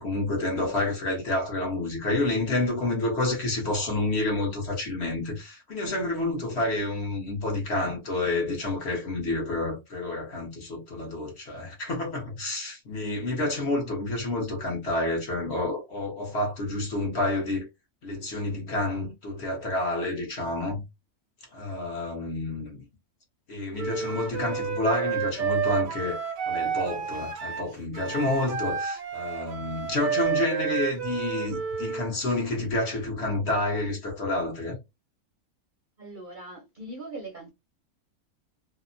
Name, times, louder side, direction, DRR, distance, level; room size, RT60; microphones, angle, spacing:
voice 1, 0.0-17.7 18.0-20.8 21.5-22.8 23.5-34.8, left 2 dB, 55° left, 1.0 m, -29 dB
Wind instrument woodwind instrument, 23.8-32.1, right 7 dB, 75° right, 1.0 m, -30 dB
voice 2, 36.0-37.5, right 2 dB, 45° right, 0.6 m, -40 dB
2.8 x 2.0 x 2.5 m
omnidirectional pair, 1.5 m